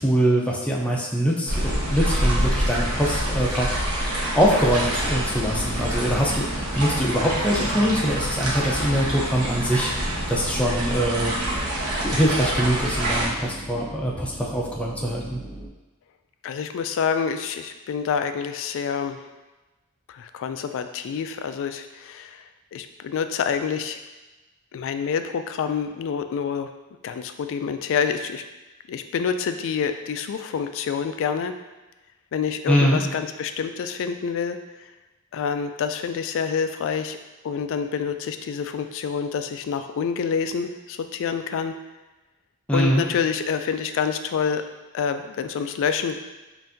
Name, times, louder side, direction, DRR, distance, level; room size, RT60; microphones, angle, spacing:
voice 1, 0.0-3.8 4.3-11.3 12.0-15.4 32.7-33.0 42.7-43.0, equal, 5° left, -3 dB, 0.5 m, -23 dB
sound 1, 1.5-13.3, right 1 dB, 75° right, 1.1 m, -26 dB
sound 2, 5.0-15.7, right 1 dB, 55° right, 1.2 m, -38 dB
voice 2, 16.4-19.3 20.1-22.4 22.7-24.0 24.7-26.7 27.0-28.4 28.9-31.5 32.3-34.6 35.3-37.2 37.4-41.7 42.7-44.6 44.9-46.2, left 6 dB, 60° left, 9 dB, 0.3 m, -27 dB
5.5 x 2.6 x 2.6 m, 1.1 s
head